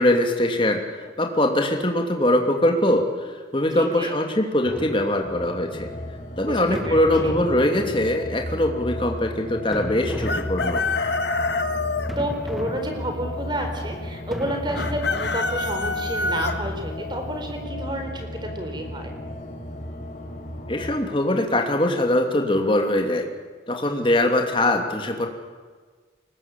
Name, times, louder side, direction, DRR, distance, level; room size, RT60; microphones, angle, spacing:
voice 1, 0.0-5.9 6.4-10.8 20.7-23.3 23.7-25.3, left 1 dB, 25° left, 3 dB, 2.8 m, -22 dB
voice 2, 3.7-4.2 6.4-7.3 12.2-19.1, right 1 dB, 25° right, 4 dB, 4.2 m, -30 dB
sound 1, 4.6-5.7 6.7-8.3 9.7-11.1 12.1-13.5 14.3-15.7, equal, ahead, 1.4 m, -36 dB
sound 2, 5.2-21.0, left 1 dB, 40° left, 3.3 m, -34 dB
Chicken rooster, 10.2-12.1 14.8-16.5, left 3 dB, 65° left, 1.8 m, -26 dB
23.5 x 20.5 x 8.7 m, 1.5 s
head